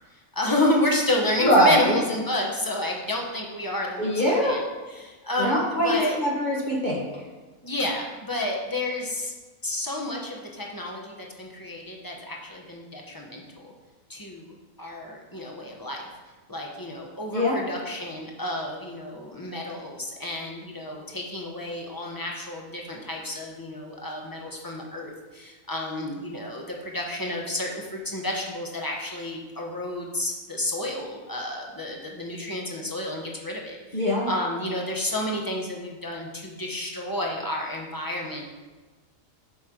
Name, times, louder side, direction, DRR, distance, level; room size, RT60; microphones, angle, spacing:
voice 1, 0.3-6.2 7.6-9.3 9.6-13.7 14.1-14.5 14.8-16.1 16.5-38.5, left 1 dB, 20° left, -1 dB, 0.8 m, -30 dB
voice 2, 1.4-2.0 4.0-4.6 5.4-7.2 17.3-17.6 33.9-34.3, equal, 35° left, -3 dB, 1.3 m, -22 dB
8.0 x 3.2 x 6.0 m, 1.3 s
omnidirectional pair, 1.4 m